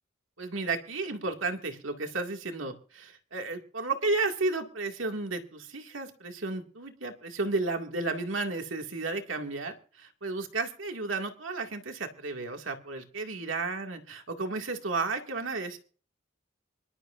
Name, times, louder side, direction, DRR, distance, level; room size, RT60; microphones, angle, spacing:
voice 1, 0.4-15.8, right 3 dB, 80° right, 4 dB, 2.2 m, -33 dB
25.5 x 12.5 x 2.6 m, 0.41 s
head